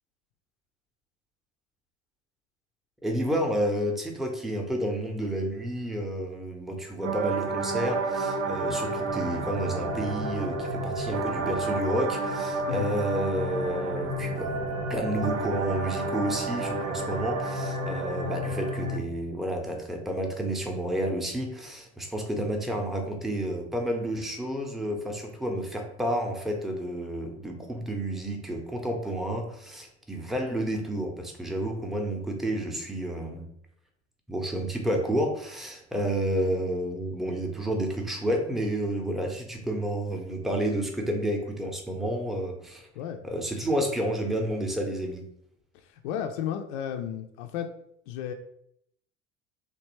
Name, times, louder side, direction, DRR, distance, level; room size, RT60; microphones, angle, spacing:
voice 1, 3.0-33.5 34.3-42.9 43.2-45.2, right 1 dB, ahead, 2 dB, 0.7 m, -30 dB
sound 1, 7.0-19.0, right 2 dB, 75° right, 0.6 m, -30 dB
voice 2, 45.7-47.7 48.1-48.3, left 9 dB, 65° left, 5 dB, 0.5 m, -33 dB
3.2 x 2.6 x 3.0 m, 0.72 s
figure-of-eight pair, 65°, 36 cm